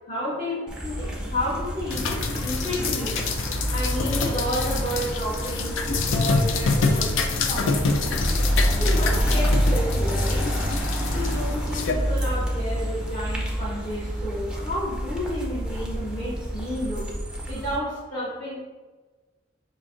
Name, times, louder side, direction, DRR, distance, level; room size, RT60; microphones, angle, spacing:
voice 1, 0.0-3.3 3.7-8.2 8.6-10.5 11.1-17.1 17.5-18.5, equal, 25° left, -8 dB, 0.8 m, -31 dB
sound 1, 0.7-17.8, equal, 5° right, 0.5 m, -27 dB
sound 2, 1.9-11.9, left 4 dB, 80° left, 0.4 m, -27 dB
5.1 x 2.5 x 2.4 m, 1.3 s
head